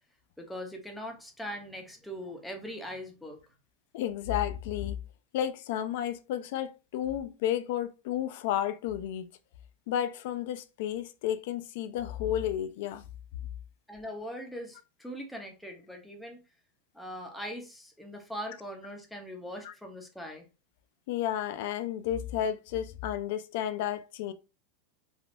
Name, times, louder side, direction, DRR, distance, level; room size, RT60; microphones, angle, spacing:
voice 1, 0.4-3.4 13.9-16.4 16.9-20.5, equal, ahead, 0.5 m, -41 dB
voice 2, 3.9-5.0 5.3-9.3 9.9-13.0 19.6-19.7 21.1-24.3, left 11 dB, 55° left, 0.3 m, -32 dB
3.3 x 2.3 x 2.5 m
supercardioid pair, 170°, 0 cm